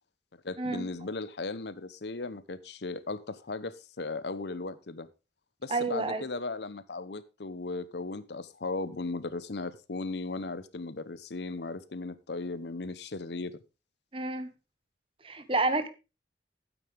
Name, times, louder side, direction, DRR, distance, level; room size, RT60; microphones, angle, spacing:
voice 1, 0.4-5.1 5.6-13.6, left 3 dB, 75° left, 0.9 m, -37 dB
voice 2, 5.7-6.2 14.1-14.5 15.2-15.9, right 2 dB, 30° right, 1.1 m, -29 dB
13.0 x 9.1 x 3.4 m
head